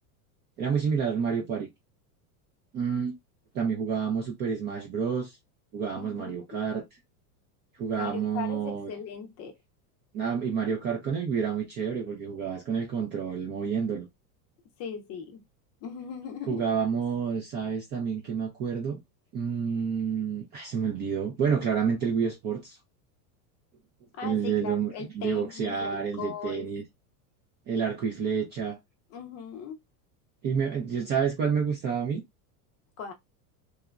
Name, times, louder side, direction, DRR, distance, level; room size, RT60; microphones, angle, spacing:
voice 1, 0.6-1.7 2.7-3.1 3.5-5.4 5.7-6.8 7.7-8.9 10.1-14.1 16.5-19.0 19.3-22.8 24.2-26.8 27.7-28.8 30.4-32.2, right 6 dB, 25° right, 0.3 m, -29 dB
voice 2, 5.9-6.3 7.9-9.6 14.8-15.4 15.8-16.7 24.1-26.7 29.1-29.8 33.0-33.1, left 7 dB, 35° left, 0.5 m, -39 dB
2.9 x 2.2 x 2.3 m
supercardioid pair, 135°, 47 cm